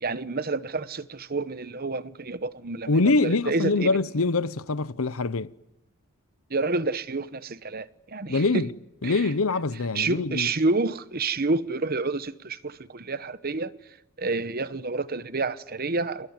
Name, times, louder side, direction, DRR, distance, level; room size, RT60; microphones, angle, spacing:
voice 1, 0.0-4.0 6.5-8.6 9.0-9.3 9.9-13.7 14.2-16.3, right 3 dB, 45° right, 1.0 m, -29 dB
voice 2, 2.9-5.5 8.3-8.7 9.0-10.5, left 3 dB, 70° left, 0.9 m, -24 dB
28.5 x 20.5 x 9.5 m
head